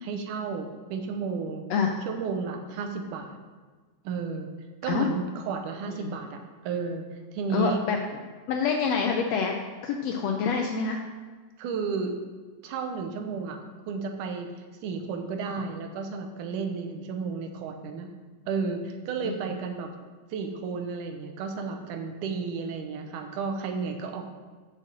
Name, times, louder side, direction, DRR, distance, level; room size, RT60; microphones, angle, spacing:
voice 1, 0.0-1.7 2.1-3.4 4.0-4.5 4.8-7.8 11.6-12.2 12.6-13.6 13.9-14.5 14.8-18.1 18.5-19.9 20.3-24.3, right 5 dB, 90° right, 5 dB, 2.4 m, -32 dB
voice 2, 7.5-8.0 8.5-9.5 9.8-11.0 19.2-19.4, left 6 dB, 75° left, 2 dB, 1.5 m, -26 dB
6.6 x 5.8 x 6.3 m, 1.4 s
omnidirectional pair, 3.6 m